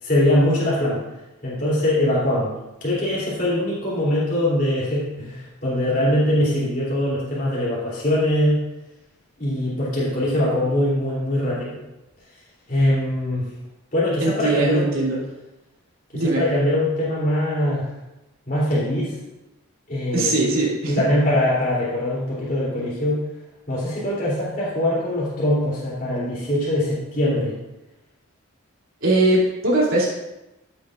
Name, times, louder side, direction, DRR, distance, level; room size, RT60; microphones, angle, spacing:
voice 1, 0.0-1.0 1.4-2.5 2.8-8.6 9.4-11.8 12.7-13.5 13.9-14.9 16.1-17.9 18.5-19.1 19.9-20.3 20.9-23.2 23.7-27.6, left 1 dB, 40° left, -8 dB, 3.1 m, -22 dB
voice 2, 14.2-15.2 16.1-16.4 20.1-20.9 29.0-30.1, right 2 dB, 75° right, -6 dB, 2.9 m, -20 dB
13.0 x 8.2 x 2.5 m, 0.96 s
head